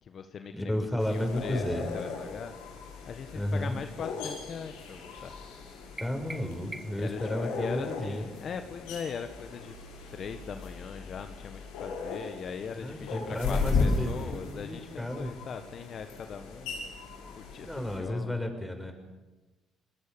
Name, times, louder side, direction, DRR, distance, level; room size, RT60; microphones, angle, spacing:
voice 1, 0.0-2.8 3.1-5.3 7.0-9.7 10.1-16.9 17.3-18.5, left 6 dB, 55° left, 8 dB, 1.6 m, -40 dB
voice 2, 0.5-1.9 3.3-3.7 6.0-8.2 12.8-15.3 17.6-18.9, left 1 dB, 5° left, 5 dB, 6.4 m, -32 dB
sound 1, 1.0-18.0, left 4 dB, 85° left, 6.3 m, -37 dB
sound 2, 6.0-7.2, right 2 dB, 20° right, 1.2 m, -44 dB
29.0 x 20.0 x 7.0 m, 1.1 s
supercardioid pair, 70°, 0 cm